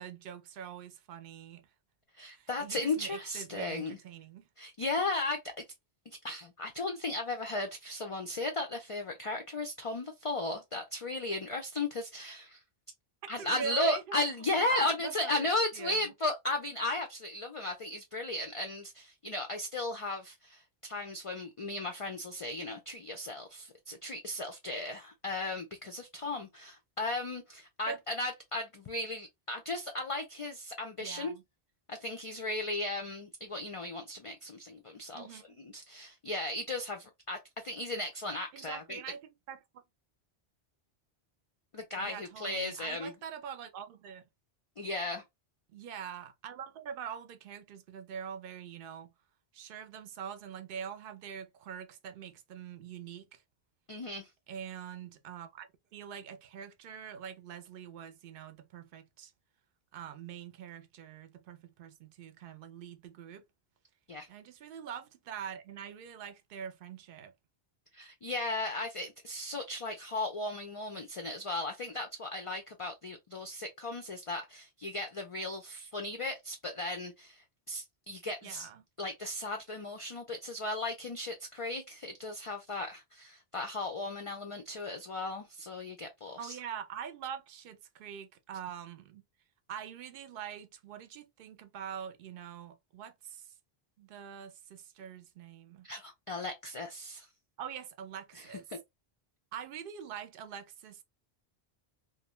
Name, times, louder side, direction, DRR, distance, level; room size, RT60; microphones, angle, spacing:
voice 1, 0.0-1.7 2.3-4.5 13.4-14.0 14.6-16.0 27.9-28.0 31.0-31.4 35.1-35.6 38.5-39.8 42.0-44.2 45.7-49.1 49.5-53.4 54.5-59.3 59.9-63.4 64.3-67.3 78.4-78.8 86.4-89.2 89.7-93.5 94.0-95.9 97.6-98.6 99.5-101.0, right 8 dB, 65° right, 0.7 m, -44 dB
voice 2, 2.2-4.0 4.6-5.6 6.1-12.6 13.3-31.3 31.9-39.0 41.7-43.1 44.8-45.2 53.9-54.3 64.1-64.3 67.9-78.7 79.0-86.6 95.8-97.3 98.3-98.8, left 2 dB, 50° left, 0.4 m, -36 dB
2.5 x 2.1 x 2.9 m
omnidirectional pair, 1.0 m